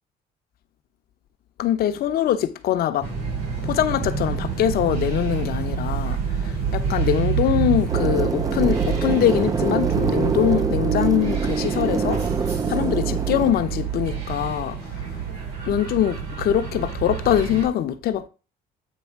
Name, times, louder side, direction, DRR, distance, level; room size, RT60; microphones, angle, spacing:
voice 1, 1.6-3.1 3.6-12.2 12.7-15.2 15.7-18.3, left 11 dB, 65° left, 0.8 m, -23 dB
sound 1, 3.0-17.7, right 7 dB, 75° right, 4.4 m, -27 dB
sound 2, 7.9-13.5, right 5 dB, 20° right, 0.4 m, -25 dB
8.4 x 3.4 x 4.6 m
cardioid pair, 110°, 17 cm